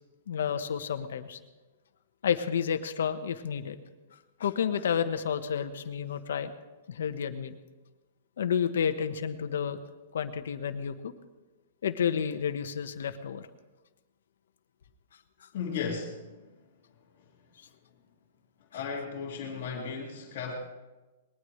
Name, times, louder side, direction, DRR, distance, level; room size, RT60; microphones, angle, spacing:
voice 1, 0.3-1.4 2.2-3.8 4.1-6.5 6.9-7.5 8.4-9.8 10.1-11.1 11.8-13.5 15.4-15.5, left 7 dB, 70° left, 9 dB, 1.2 m, -30 dB
voice 2, 15.5-16.5 18.7-20.5, left 6 dB, 35° left, -7 dB, 2.3 m, -35 dB
20.5 x 19.5 x 3.3 m, 1.2 s
hypercardioid pair, 180°, 0 cm